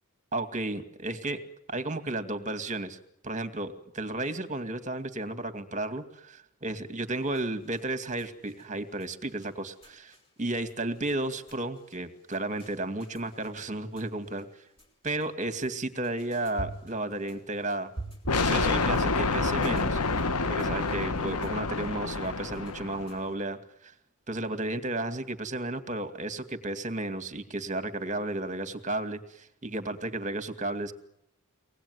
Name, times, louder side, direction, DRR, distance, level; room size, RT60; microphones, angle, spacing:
voice 1, 0.3-1.4 1.7-3.0 3.2-14.5 15.0-17.9 18.4-20.0 20.4-23.9 24.3-30.9, right 2 dB, 35° right, 9 dB, 2.2 m, -33 dB
sound 1, 7.0-23.3, right 2 dB, 25° left, 5.2 m, -49 dB
sound 2, 18.3-23.1, left 3 dB, 85° left, 1.3 m, -28 dB
24.5 x 19.5 x 9.6 m, 0.76 s
head